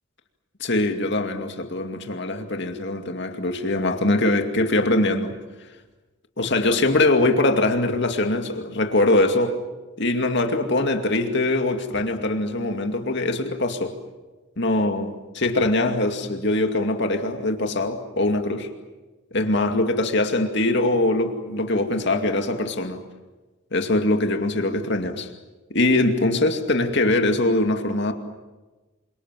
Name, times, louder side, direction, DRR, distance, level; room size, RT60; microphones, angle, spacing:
voice 1, 0.6-5.4 6.4-9.6 10.0-13.9 14.6-18.7 19.3-23.0 23.7-25.3 25.7-28.1, left 2 dB, 55° left, 2.4 m, -22 dB
28.5 x 24.5 x 7.7 m
head